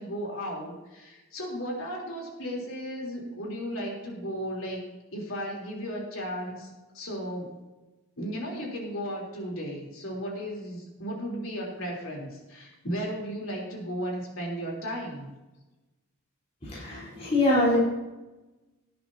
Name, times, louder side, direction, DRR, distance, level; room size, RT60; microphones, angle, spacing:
voice 1, 0.0-4.8 5.1-7.5 8.2-15.3, equal, 65° left, -1 dB, 3.6 m, -35 dB
voice 2, 16.6-17.8, left 1 dB, 30° left, -8 dB, 4.0 m, -24 dB
18.0 x 10.0 x 2.8 m, 1.1 s
head